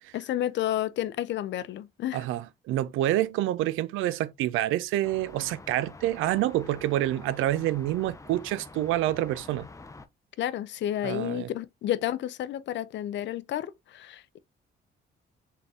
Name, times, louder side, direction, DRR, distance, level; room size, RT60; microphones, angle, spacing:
voice 1, 0.1-2.2 10.4-14.4, left 12 dB, 65° left, 0.5 m, -31 dB
voice 2, 2.1-9.7 11.0-11.5, right 14 dB, 90° right, 0.4 m, -27 dB
sound 1, 5.0-10.1, left 3 dB, 15° left, 0.5 m, -47 dB
3.8 x 3.7 x 2.7 m
cardioid pair, 90°, 20 cm